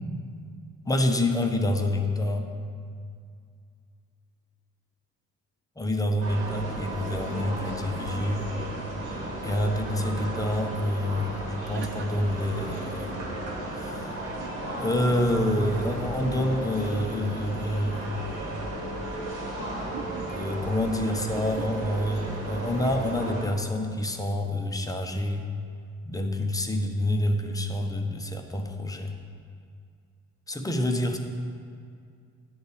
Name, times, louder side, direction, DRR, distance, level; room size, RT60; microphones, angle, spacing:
voice 1, 0.8-2.5 5.8-8.5 9.4-13.2 13.7-14.2 14.8-18.5 20.2-25.5 26.1-29.2 30.5-31.2, left 1 dB, 10° left, 4 dB, 0.8 m, -27 dB
sound 1, 6.2-23.4, right 1 dB, 70° right, 1.9 m, -34 dB
sound 2, 10.9-11.0 11.4-12.4 14.2-15.1 15.7-16.0 16.8-17.2 17.9-18.3 19.7-20.7 21.3-21.8, right 7 dB, 30° right, 0.6 m, -45 dB
8.7 x 3.9 x 7.1 m, 2.2 s
figure-of-eight pair, 45°, 42 cm